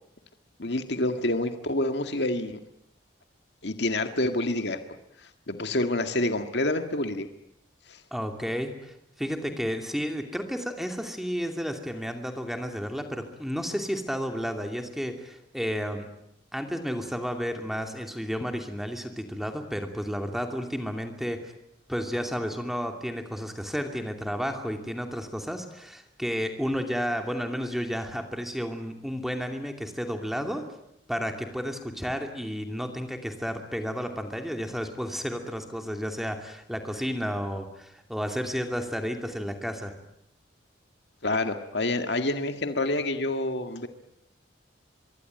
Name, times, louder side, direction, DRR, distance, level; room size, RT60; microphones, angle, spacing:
voice 1, 0.6-2.6 3.6-4.8 5.5-7.3 7.9-8.0 41.2-43.9, left 2 dB, 65° left, 7 dB, 1.9 m, -27 dB
voice 2, 8.1-16.1 16.5-21.5 21.9-30.6 31.1-39.9, equal, ahead, 5 dB, 2.6 m, -32 dB
25.0 x 23.0 x 9.1 m, 0.79 s
head